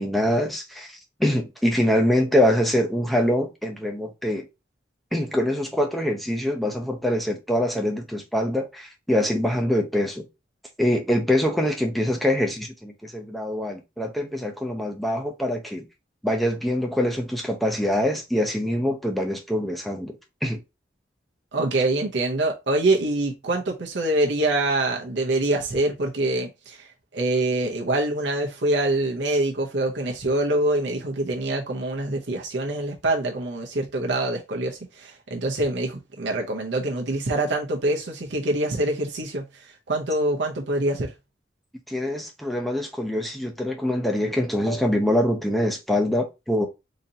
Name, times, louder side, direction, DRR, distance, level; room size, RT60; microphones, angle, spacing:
voice 1, 0.0-4.5 5.1-10.3 10.8-15.9 16.2-20.6 41.9-46.7, left 1 dB, ahead, 0.6 m, -24 dB
voice 2, 21.5-41.1, right 2 dB, 70° right, 0.7 m, -25 dB
4.0 x 2.8 x 2.7 m
head